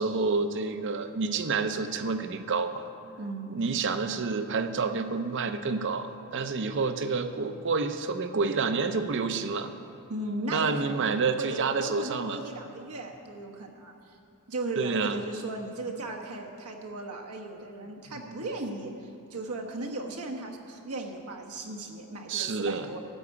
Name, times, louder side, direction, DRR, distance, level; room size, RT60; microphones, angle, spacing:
voice 1, 0.0-2.9 3.5-9.7 10.5-12.4 14.8-15.2 18.3-18.4 22.3-22.9, right 4 dB, 55° right, 9 dB, 0.6 m, -29 dB
voice 2, 3.2-3.6 10.1-14.2 14.5-23.0, right 2 dB, 85° right, 1 dB, 1.2 m, -37 dB
13.5 x 4.8 x 8.4 m, 2.8 s
head